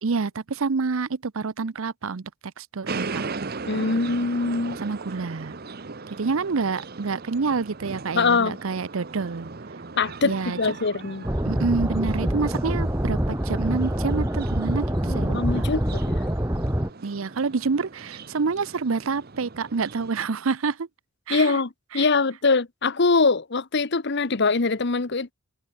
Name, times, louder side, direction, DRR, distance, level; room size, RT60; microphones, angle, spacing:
voice 1, 0.0-2.3 2.6-3.3 4.8-5.5 6.2-9.5 10.2-10.6 11.4-15.7 17.0-20.9 21.3-21.6 21.9-22.1, right 4 dB, 75° right, 0.7 m, -27 dB
sound 1, 2.9-20.1, right 4 dB, 45° right, 1.0 m, -38 dB
voice 2, 3.7-4.8 8.1-8.6 10.0-11.3 15.1-16.2 21.3-25.3, left 4 dB, 55° left, 1.0 m, -23 dB
sound 2, 11.2-16.9, equal, 15° right, 1.8 m, -25 dB
head